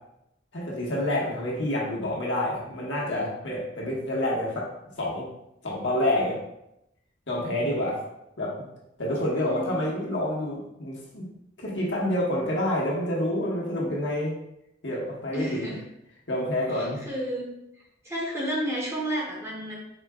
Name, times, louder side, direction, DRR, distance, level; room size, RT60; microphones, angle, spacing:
voice 1, 0.5-4.7 5.0-5.3 5.6-6.4 7.3-8.0 8.4-8.7 9.0-11.2 11.6-14.3 14.8-15.7 16.3-17.0, left 1 dB, 70° left, -4 dB, 1.3 m, -28 dB
voice 2, 9.4-10.0 15.3-15.8 16.7-17.5 18.0-19.8, equal, 15° right, -3 dB, 0.9 m, -32 dB
4.8 x 4.3 x 2.3 m, 0.83 s
head